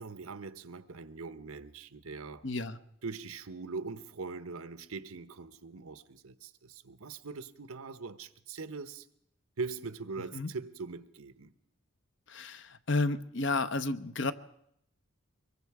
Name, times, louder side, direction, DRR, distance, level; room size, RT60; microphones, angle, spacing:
voice 1, 0.0-2.4 3.0-9.1 9.6-11.5, right 4 dB, 85° right, 1.0 m, -41 dB
voice 2, 2.4-2.8 10.3-10.5 12.3-14.3, left 3 dB, 55° left, 0.9 m, -31 dB
24.5 x 22.5 x 4.9 m
head